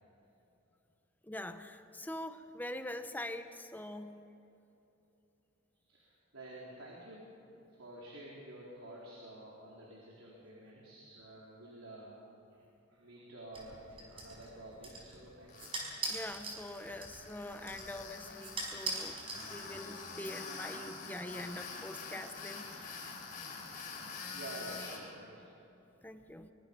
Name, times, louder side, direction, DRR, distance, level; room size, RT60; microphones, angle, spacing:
voice 1, 1.2-4.2 16.1-23.0 26.0-26.5, left 1 dB, 10° left, 8 dB, 0.9 m, -44 dB
voice 2, 5.8-12.2 12.5-12.6 12.9-15.8 24.2-25.5, right 1 dB, 75° right, -4 dB, 4.1 m, -50 dB
sound 1, 13.5-20.0, right 2 dB, 25° right, 5.0 m, -43 dB
Tools, 15.5-25.0, left 4 dB, 40° left, 4.5 m, -46 dB
23.5 x 23.0 x 5.4 m, 3.0 s
head